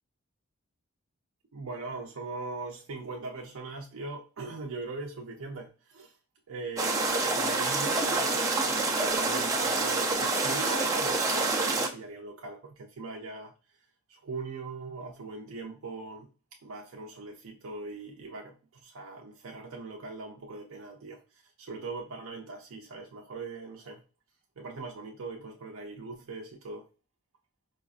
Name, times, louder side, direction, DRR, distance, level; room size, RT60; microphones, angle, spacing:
voice 1, 1.5-6.2 6.5-13.5 14.1-16.3 16.6-24.0 24.6-26.8, right 3 dB, 70° right, 0.5 m, -40 dB
sound 1, 6.8-11.9, right 3 dB, 15° right, 0.4 m, -27 dB
4.8 x 2.5 x 2.4 m
head